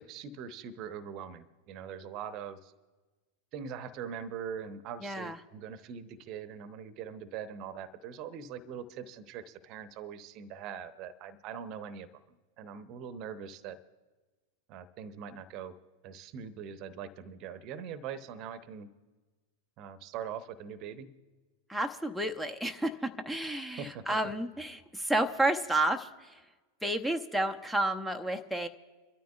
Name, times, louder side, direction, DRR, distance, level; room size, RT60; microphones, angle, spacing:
voice 1, 0.0-2.7 3.5-12.1 12.6-13.8 14.7-15.7 16.0-18.9 19.8-21.1 23.8-24.0, right 7 dB, 40° right, 13 dB, 0.9 m, -42 dB
voice 2, 5.0-5.4 21.7-26.4 26.8-28.7, right 1 dB, ahead, 7 dB, 0.7 m, -31 dB
27.0 x 13.0 x 2.4 m, 1.2 s
figure-of-eight pair, 90°, 0 cm